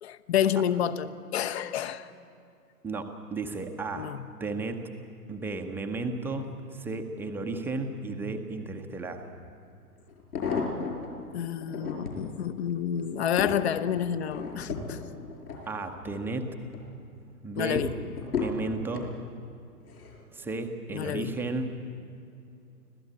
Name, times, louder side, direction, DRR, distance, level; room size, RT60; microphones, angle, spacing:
voice 1, 0.0-2.1 4.0-4.2 11.3-15.0 17.6-17.9 20.9-21.4, left 9 dB, 40° left, 1.0 m, -29 dB
voice 2, 2.8-4.1 4.4-4.8 5.3-9.3 15.7-16.6 17.4-17.9 18.4-19.1 20.3-21.7, right 3 dB, 5° right, 0.7 m, -34 dB
sound 1, 9.3-9.4 10.1-11.1 11.6-12.3 12.8-16.2 16.6-17.1 17.7-19.1 19.9-20.2 20.5-20.6, left 5 dB, 70° left, 5.9 m, -34 dB
25.5 x 17.0 x 8.7 m
figure-of-eight pair, 120°, 47 cm